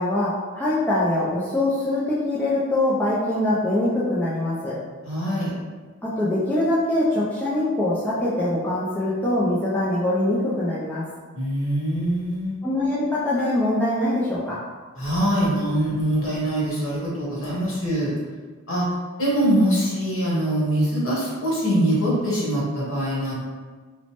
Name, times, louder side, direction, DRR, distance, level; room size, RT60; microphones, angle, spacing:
voice 1, 0.0-4.7 6.0-11.0 12.6-14.6, left 1 dB, 5° left, -9 dB, 0.3 m, -23 dB
voice 2, 5.0-5.5 11.3-12.6 15.0-18.1 18.7-18.8 19.2-23.3, equal, 65° left, -6 dB, 1.0 m, -23 dB
3.0 x 2.0 x 2.8 m, 1.4 s
head